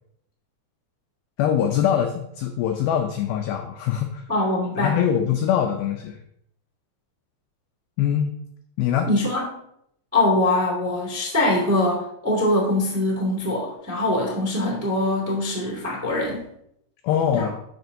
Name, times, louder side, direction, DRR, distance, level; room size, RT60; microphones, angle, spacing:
voice 1, 1.4-4.2 4.8-6.2 8.0-8.4 8.8-9.1 17.0-17.5, left 9 dB, 85° left, 4 dB, 2.1 m, -23 dB
voice 2, 4.3-4.9 9.0-9.4 10.1-16.4 17.3-17.5, left 1 dB, 15° right, -5 dB, 0.5 m, -23 dB
12.0 x 5.1 x 2.7 m, 0.75 s
omnidirectional pair, 5.0 m